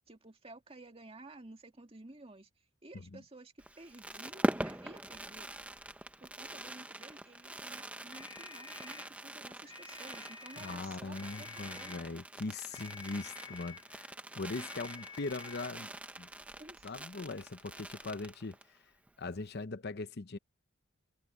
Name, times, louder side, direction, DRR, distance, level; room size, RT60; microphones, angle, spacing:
voice 1, 0.1-5.5 6.2-12.1 14.6-14.7 16.6-17.1, right 2 dB, 25° right, 2.1 m, -53 dB
Fireworks, 3.6-18.8 19.1-19.2 19.4-19.6, right 1 dB, 5° right, 0.8 m, -43 dB
sound 1, 8.1-9.2 9.6-10.9 11.1-12.1 12.7-13.9 14.5-15.8, left 5 dB, 20° left, 0.7 m, -51 dB
voice 2, 10.6-15.9 16.2-16.3 16.8-18.8 19.2-20.4, left 3 dB, 50° left, 0.8 m, -40 dB
head